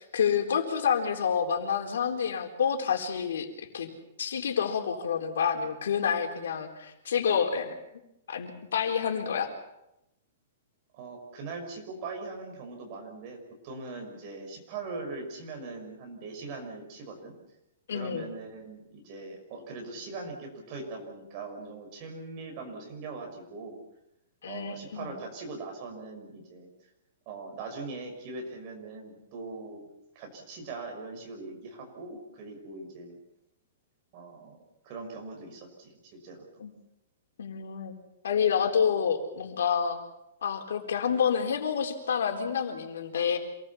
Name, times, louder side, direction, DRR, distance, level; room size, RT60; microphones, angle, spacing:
voice 1, 0.0-3.9 4.2-7.7 8.3-9.5 17.9-18.3 24.4-25.1 36.6-36.7 37.4-38.0 38.2-40.0 40.4-43.4, left 7 dB, 90° left, 4 dB, 4.1 m, -28 dB
voice 2, 10.9-13.4 13.6-17.3 17.9-23.8 24.4-26.7 27.3-29.9 30.1-33.2 34.1-34.6 34.8-36.4, right 3 dB, 30° right, 2 dB, 5.8 m, -41 dB
27.5 x 19.5 x 7.2 m, 0.87 s
hypercardioid pair, 175°, 0 cm